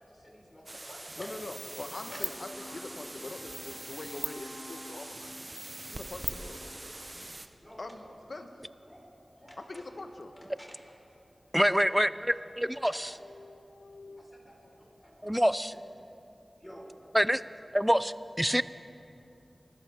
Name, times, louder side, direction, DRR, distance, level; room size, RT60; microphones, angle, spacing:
voice 1, 0.0-1.3 2.0-2.2 2.6-2.8 6.8-7.0 7.6-8.1 8.8-10.1 10.3-11.0 11.5-13.2 14.2-15.4 15.7-15.8 16.6-17.0, equal, 15° left, -2 dB, 4.3 m, -52 dB
sound 1, 0.7-7.5, right 2 dB, 40° right, 0.8 m, -41 dB
voice 2, 1.2-5.3 5.9-6.6 7.8-8.5 9.7-10.3 13.2-14.2, left 2 dB, 70° left, 6 dB, 1.2 m, -43 dB
Wind instrument woodwind instrument, 2.0-6.9, left 1 dB, 40° left, 2.9 m, -52 dB
voice 3, 11.5-13.1 15.2-15.7 17.1-17.4 17.7-18.6, equal, 5° right, 15 dB, 0.5 m, -26 dB
24.5 x 13.5 x 3.6 m, 2.7 s
cardioid pair, 45°, 0 cm